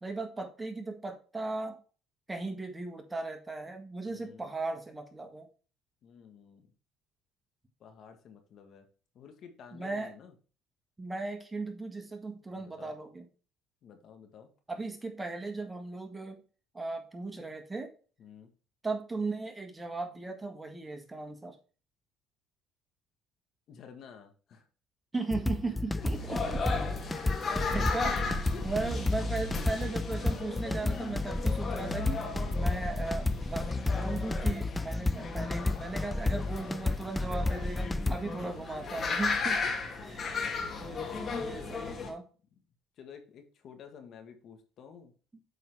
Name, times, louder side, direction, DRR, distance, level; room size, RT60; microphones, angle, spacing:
voice 1, 0.0-1.8 2.3-5.5 9.7-10.1 11.0-13.3 14.7-16.4 16.7-17.9 18.8-21.5 25.1-26.6 27.6-28.1 28.6-32.2 32.5-39.6 40.1-40.3 40.8-41.0 41.3-42.2, right 3 dB, 15° right, 5 dB, 1.7 m, -37 dB
voice 2, 4.0-4.4 6.0-6.7 7.8-8.9 9.1-10.3 12.5-12.9 13.8-14.5 18.2-18.5 23.7-24.7 25.7-26.7 27.0-27.7 28.0-28.1 28.5-29.1 29.5-29.6 30.3-31.1 32.3-32.9 34.9-35.3 37.9-38.5 39.4-41.5 41.8-42.1 42.5-42.6 43.0-45.1, left 7 dB, 60° left, 6 dB, 1.6 m, -51 dB
sound 1, 25.3-38.2, left 2 dB, 10° left, 0.4 m, -31 dB
sound 2, 26.0-42.1, left 4 dB, 40° left, 2.0 m, -36 dB
8.2 x 3.9 x 4.7 m, 0.37 s
supercardioid pair, 95°, 0 cm